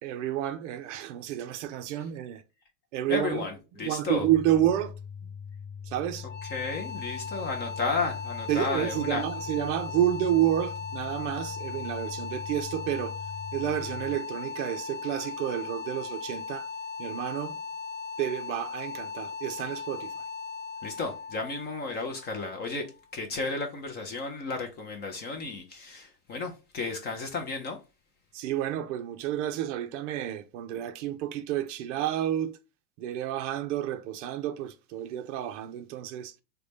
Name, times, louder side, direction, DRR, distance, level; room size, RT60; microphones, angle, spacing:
voice 1, 0.0-2.4 2.9-3.5 3.8-4.9 5.9-6.3 8.5-13.2 13.5-16.7 17.0-17.6 18.2-20.2 28.3-32.6 33.0-36.3, right 12 dB, 50° right, 0.5 m, -30 dB
voice 2, 3.1-4.3 6.5-9.2 20.8-22.9 23.1-27.8, left 3 dB, 20° left, 0.4 m, -33 dB
sound 1, 4.2-14.2, left 6 dB, 75° left, 0.9 m, -42 dB
sound 2, 6.2-23.1, left 5 dB, 35° left, 1.1 m, -38 dB
3.8 x 2.2 x 3.2 m
hypercardioid pair, 105°, 50 cm